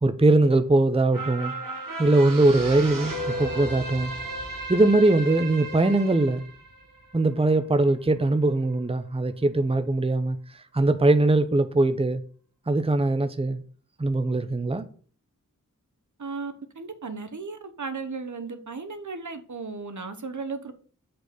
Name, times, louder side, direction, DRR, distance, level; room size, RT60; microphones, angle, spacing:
voice 1, 0.0-1.5 2.0-4.1 4.7-6.4 7.1-12.2 12.7-13.6 14.0-14.9, right 2 dB, 20° right, 0.7 m, -21 dB
sound 1, 1.1-7.8 8.2-8.3, right 1 dB, 90° right, 1.8 m, -35 dB
voice 2, 16.2-20.7, right 4 dB, 65° right, 1.1 m, -35 dB
7.8 x 4.2 x 6.8 m
wide cardioid pair, 45°, 32 cm